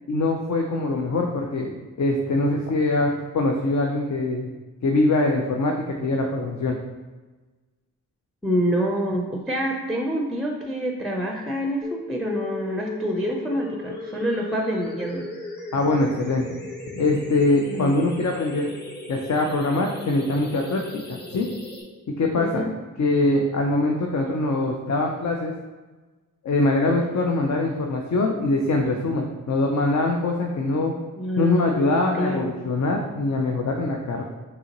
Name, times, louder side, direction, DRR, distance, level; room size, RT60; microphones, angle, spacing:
voice 1, 0.1-1.7 2.0-4.5 4.8-5.7 6.0-6.8 15.7-16.5 16.9-18.7 19.1-20.8 21.1-21.5 22.2-22.6 23.0-25.5 26.4-31.0 31.4-34.2, left 2 dB, 55° left, 1 dB, 0.5 m, -23 dB
voice 2, 8.4-15.2 17.7-17.9 22.4-22.7 31.2-32.5, equal, ahead, 1 dB, 0.5 m, -27 dB
sound 1, 11.8-21.8, left 2 dB, 30° left, 1.0 m, -37 dB
5.5 x 2.9 x 2.9 m, 1.3 s
cardioid pair, 50°, 34 cm